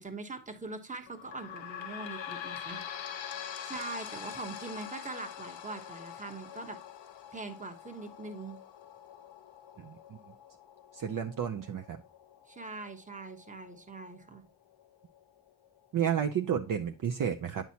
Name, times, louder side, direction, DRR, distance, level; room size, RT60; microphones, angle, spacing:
voice 1, 0.0-2.8 3.4-6.8 7.3-8.6 12.5-14.4, right 3 dB, 15° right, 6 dB, 1.0 m, -42 dB
sound 1, 1.1-14.2 14.8-14.9 15.2-15.3 16.1-16.2, left 9 dB, 75° left, 0.9 m, -44 dB
voice 2, 10.9-12.0 15.9-17.7, right 8 dB, 45° right, 5 dB, 0.5 m, -31 dB
9.3 x 5.9 x 2.8 m, 0.32 s
wide cardioid pair, 135°, 45 cm